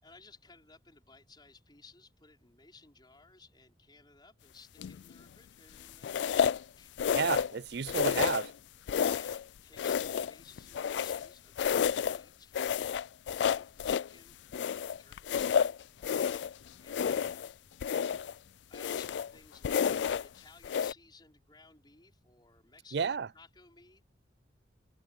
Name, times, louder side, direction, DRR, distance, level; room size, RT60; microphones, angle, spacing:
voice 1, 0.0-6.9 8.9-12.9 13.4-15.6 16.8-17.5 18.7-24.0, left 3 dB, 25° left, 5.4 m, -58 dB
sound 1, 4.8-5.1 6.0-6.6 7.0-7.6 7.9-8.5 8.9-9.4 9.8-11.3 11.6-12.2 12.5-14.1 14.5-16.5 16.9-17.5 17.8-18.3 18.7-19.3 19.6-20.3 20.6-20.9, left 7 dB, 70° left, 0.3 m, -30 dB
voice 2, 7.0-8.5 22.9-23.3, right 6 dB, 65° right, 0.5 m, -31 dB
head